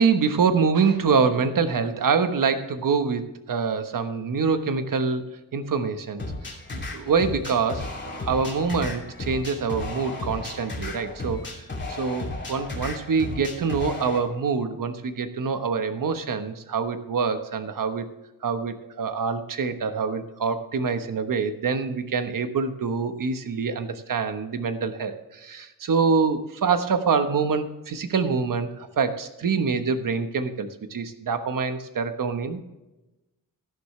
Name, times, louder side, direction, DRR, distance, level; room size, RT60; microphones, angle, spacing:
voice 1, 0.0-5.2 5.5-11.6 12.0-18.1 18.4-32.6, right 5 dB, 65° right, 9 dB, 1.2 m, -25 dB
sound 1, 6.2-14.2, left 2 dB, 30° left, 2.8 m, -34 dB
13.0 x 11.5 x 3.2 m, 1.0 s
wide cardioid pair, 110°, 35 cm